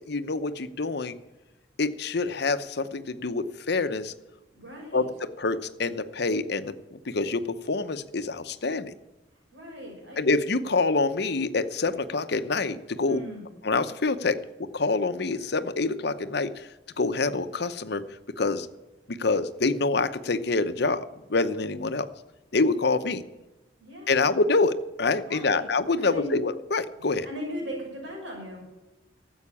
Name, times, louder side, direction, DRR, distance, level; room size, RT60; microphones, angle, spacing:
voice 1, 0.1-1.2 1.8-4.1 4.9-8.9 10.2-13.2 13.6-16.7 17.0-18.0 18.4-18.7 19.1-22.1 22.5-23.2 24.1-27.3, left 3 dB, 60° left, 10 dB, 0.8 m, -26 dB
voice 2, 4.5-5.1 9.5-10.2 13.0-13.5 23.8-24.3 25.2-25.7 26.0-26.4 27.2-28.6, equal, 85° right, -1 dB, 5.9 m, -38 dB
13.0 x 8.0 x 8.5 m, 1.1 s
head